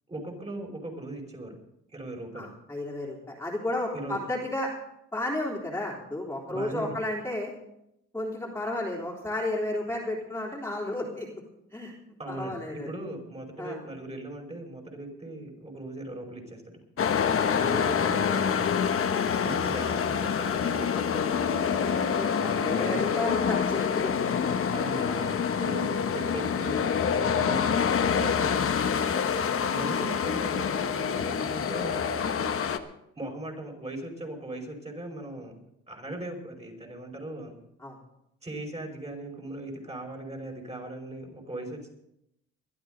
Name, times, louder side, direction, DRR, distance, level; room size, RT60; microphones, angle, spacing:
voice 1, 0.1-1.6 1.9-2.5 3.9-4.2 6.5-7.0 12.2-16.8 17.5-18.7 19.4-21.4 22.4-23.0 24.7-25.3 25.6-28.8 29.7-32.0 33.2-35.5 35.9-37.5 38.4-41.9, right 1 dB, 20° right, 0 dB, 5.3 m, -39 dB
voice 2, 2.3-4.7 5.1-7.5 8.1-11.3 11.7-11.9 12.3-12.9 13.6-13.8 21.7-24.1 24.6-25.4 37.8-38.0, left 1 dB, 10° left, -4 dB, 3.6 m, -33 dB
sound 1, 17.0-32.8, left 7 dB, 45° left, 1.1 m, -26 dB
22.0 x 12.0 x 3.9 m, 0.79 s
cardioid pair, 90°, 30 cm